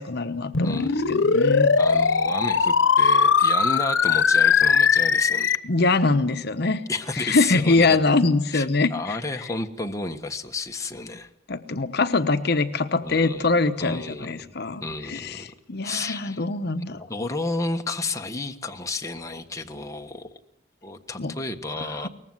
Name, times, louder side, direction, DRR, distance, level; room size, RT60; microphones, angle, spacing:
voice 1, 0.0-1.8 5.6-6.8 7.2-9.2 11.5-14.8 15.1-17.0 21.2-21.3, left 3 dB, 60° left, 9 dB, 1.0 m, -23 dB
sound 1, 0.5-5.6, left 5 dB, 90° left, 0.9 m, -19 dB
voice 2, 0.6-1.2 1.8-5.6 6.9-8.0 8.5-11.3 13.0-13.5 13.8-14.5 14.8-15.5 15.8-16.4 17.0-20.3 20.8-22.1, left 3 dB, 15° left, 4 dB, 1.4 m, -31 dB
22.5 x 19.5 x 7.8 m, 0.74 s
head